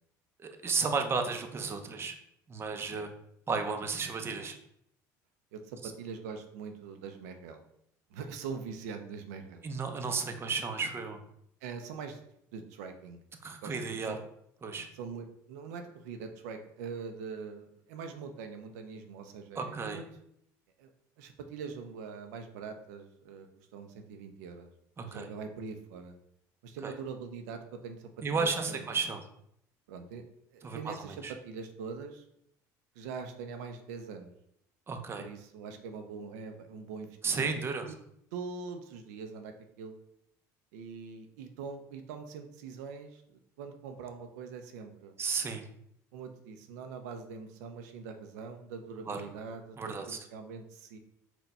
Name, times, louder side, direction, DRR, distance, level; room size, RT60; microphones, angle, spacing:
voice 1, 0.4-2.1 2.5-3.1 3.5-4.6 9.6-11.2 13.4-14.2 14.6-14.9 19.6-20.0 25.0-25.3 26.8-26.9 28.2-29.2 30.6-30.9 31.2-31.3 34.9-35.2 37.2-37.9 45.2-45.6 49.1-49.2 49.8-50.2, right 4 dB, 30° right, 5 dB, 0.6 m, -33 dB
voice 2, 5.5-7.6 8.1-9.7 11.6-12.2 12.5-13.2 13.6-14.2 14.9-20.0 20.8-20.9 21.2-24.7 25.0-26.2 26.6-28.8 29.9-30.2 30.5-32.2 32.9-34.3 35.2-37.5 37.9-38.0 38.3-39.9 40.7-45.1 46.1-51.0, right 5 dB, 90° right, 5 dB, 0.5 m, -43 dB
4.2 x 2.2 x 4.0 m, 0.72 s
supercardioid pair, 90°, 8 cm